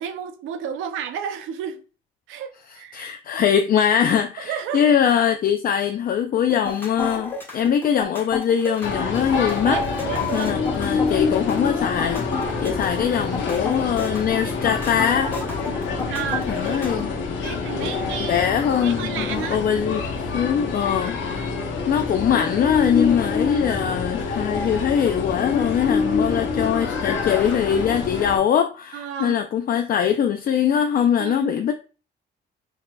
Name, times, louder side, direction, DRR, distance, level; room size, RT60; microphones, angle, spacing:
voice 1, 0.0-1.8 2.3-3.4 4.4-4.9 9.6-10.6 16.1-16.8 17.4-18.4 18.8-19.6 28.9-29.4 31.2-31.5, right 8 dB, 90° right, 0.5 m, -32 dB
voice 2, 2.9-9.8 10.3-15.3 16.5-17.2 18.2-21.5 21.9-31.7, left 8 dB, 45° left, 0.4 m, -22 dB
sound 1, 6.5-17.1, left 3 dB, 10° left, 1.6 m, -30 dB
sound 2, 8.8-28.4, left 4 dB, 70° left, 1.1 m, -26 dB
4.9 x 2.8 x 2.2 m
cardioid pair, 90°, 20 cm